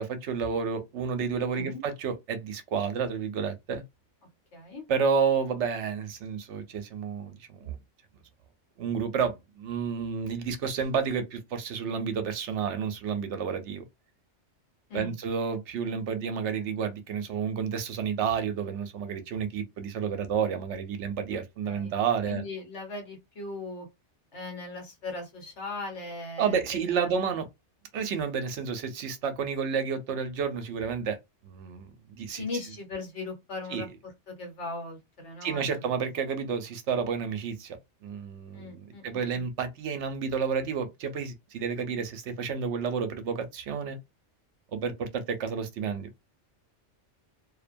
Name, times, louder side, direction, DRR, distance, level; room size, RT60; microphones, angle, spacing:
voice 1, 0.0-3.8 4.9-7.8 8.8-13.8 14.9-22.4 26.4-27.4 27.9-31.2 31.4-32.4 33.7-33.9 35.4-44.0 44.7-46.1, right 6 dB, 70° right, 0.8 m, -30 dB
voice 2, 4.5-4.8 14.9-15.1 21.6-21.9 22.3-23.9 24.3-27.1 32.4-36.1 38.5-39.5, left 3 dB, 65° left, 1.3 m, -39 dB
2.5 x 2.2 x 2.5 m
omnidirectional pair, 1.3 m